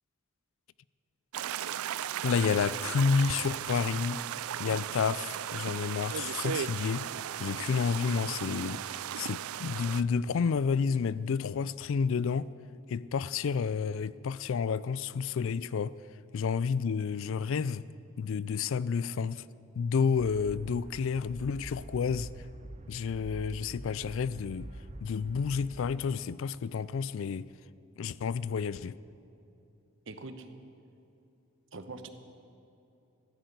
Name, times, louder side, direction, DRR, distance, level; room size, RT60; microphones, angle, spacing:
sound 1, 1.3-10.0, right 10 dB, 80° right, 0.4 m, -36 dB
voice 1, 2.2-4.2 4.6-7.1 7.4-8.8 9.2-12.5 12.9-15.9 16.3-17.8 18.2-19.4 19.8-22.3 22.9-24.7 25.0-27.5 28.0-29.0, left 6 dB, 65° left, 0.3 m, -30 dB
sound 2, 20.1-26.0, right 1 dB, 30° right, 0.6 m, -46 dB
voice 2, 30.1-30.5 31.7-32.1, right 3 dB, 60° right, 1.0 m, -42 dB
14.5 x 10.5 x 8.0 m
head